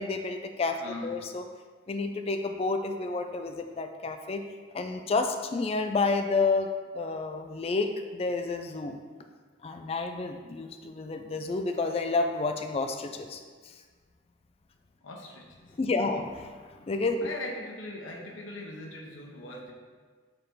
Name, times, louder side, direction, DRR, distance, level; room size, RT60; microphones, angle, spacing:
voice 1, 0.0-1.4 1.9-4.4 4.7-6.7 6.9-9.0 9.6-13.4 15.8-16.5 16.8-17.3, left 3 dB, 30° left, 6 dB, 0.3 m, -30 dB
voice 2, 0.8-1.2 15.0-15.4 16.0-16.2 17.2-19.7, left 2 dB, 90° left, 1 dB, 1.0 m, -40 dB
6.6 x 4.1 x 3.8 m, 1.5 s
head